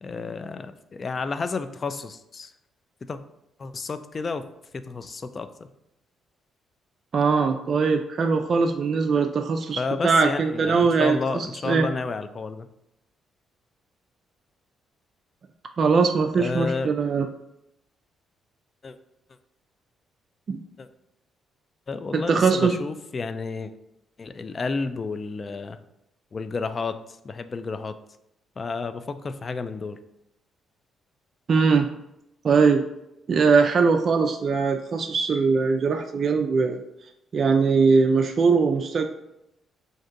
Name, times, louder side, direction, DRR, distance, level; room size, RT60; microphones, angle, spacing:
voice 1, 0.0-2.5 3.1-3.2 3.6-4.4 4.7-5.5 9.8-12.7 16.4-16.9 18.8-19.0 20.8-20.9 21.9-23.7 24.2-25.8 26.3-27.0 27.2-28.0 28.6-30.0, left 4 dB, 35° left, 11 dB, 0.3 m, -31 dB
voice 2, 7.1-11.9 15.8-17.3 20.5-20.6 22.1-22.7 31.5-31.9 32.4-32.8 33.3-36.8 37.3-39.1, right 5 dB, 50° right, 4 dB, 0.3 m, -21 dB
6.3 x 2.6 x 2.5 m, 0.83 s
cardioid pair, 90°, 0 cm